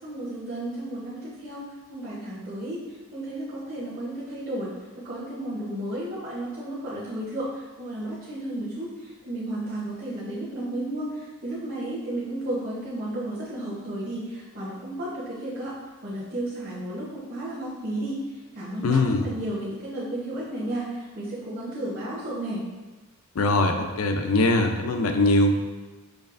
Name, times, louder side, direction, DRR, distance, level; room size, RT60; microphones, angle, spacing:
voice 1, 0.0-2.8 3.1-15.7 16.0-18.2 18.5-22.6, right 1 dB, 45° right, -11 dB, 1.0 m, -33 dB
voice 2, 18.8-19.2 23.4-25.6, left 2 dB, 85° left, 5 dB, 0.5 m, -21 dB
6.4 x 3.2 x 2.5 m, 1.3 s
head